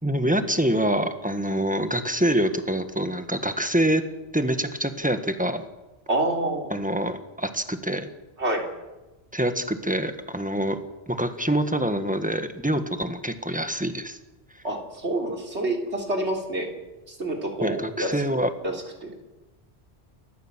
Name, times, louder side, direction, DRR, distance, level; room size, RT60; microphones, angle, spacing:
voice 1, 0.0-4.0 4.3-5.6 6.7-8.1 9.3-10.8 11.1-14.2 17.6-18.5, right 1 dB, 5° right, 8 dB, 1.5 m, -25 dB
voice 2, 6.1-6.7 8.4-8.6 14.6-16.7 17.1-18.1 18.6-18.7 19.0-19.1, right 1 dB, 85° right, 2 dB, 3.8 m, -27 dB
29.5 x 14.5 x 7.5 m, 1.1 s
omnidirectional pair, 1.1 m